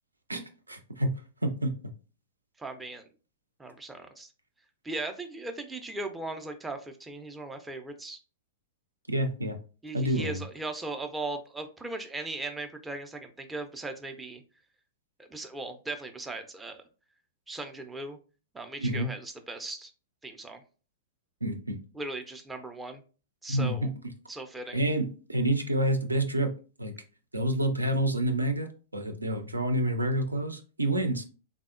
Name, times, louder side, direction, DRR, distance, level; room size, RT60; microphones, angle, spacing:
voice 1, 0.7-1.1 1.4-1.7 9.1-9.6 9.9-10.4 18.8-19.1 21.4-21.8 23.5-23.9 24.7-26.5 26.8-26.9 27.3-31.2, right 1 dB, 85° right, 6 dB, 0.4 m, -28 dB
voice 2, 2.6-3.0 3.6-4.3 4.8-8.2 9.8-14.4 15.3-16.8 17.5-18.2 18.5-19.9 20.2-20.6 21.9-23.0 23.4-23.9 24.3-24.8, right 2 dB, 10° right, 6 dB, 0.4 m, -38 dB
3.4 x 2.0 x 2.4 m, 0.36 s
figure-of-eight pair, 100°, 0 cm